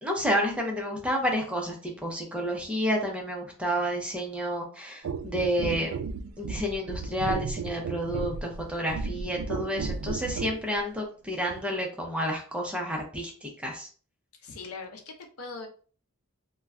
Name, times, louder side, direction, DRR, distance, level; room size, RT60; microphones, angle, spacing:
voice 1, 0.0-5.9 6.4-13.9, equal, 5° right, 0 dB, 0.5 m, -30 dB
sound 1, 5.0-10.6 11.5-11.6, right 5 dB, 70° right, 0.3 m, -34 dB
voice 2, 14.4-15.7, left 4 dB, 70° left, 2 dB, 0.6 m, -41 dB
2.2 x 2.2 x 3.5 m, 0.40 s
head